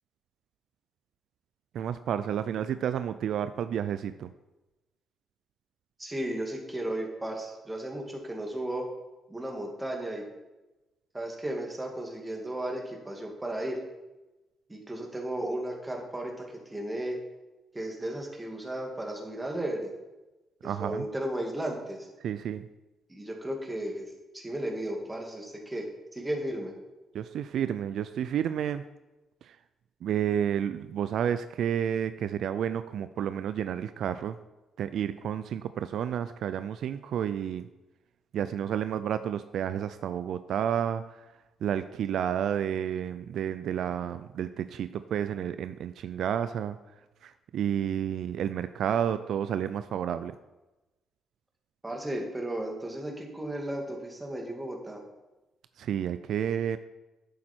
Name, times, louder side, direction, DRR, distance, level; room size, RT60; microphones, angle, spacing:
voice 1, 1.7-4.3 20.6-21.1 22.2-22.7 27.1-28.8 29.4-29.6 30.0-34.4 34.8-37.7 38.3-41.1 41.6-46.8 47.2-50.3 55.8-56.8, right 9 dB, 70° right, 12 dB, 0.4 m, -30 dB
voice 2, 6.0-8.9 9.3-10.2 11.1-13.8 14.7-17.2 17.7-19.9 20.6-22.1 23.1-25.9 26.1-26.7 51.8-55.0, right 1 dB, 15° right, 1 dB, 2.3 m, -34 dB
10.5 x 7.6 x 4.5 m, 1.1 s
cardioid pair, 90°, 0 cm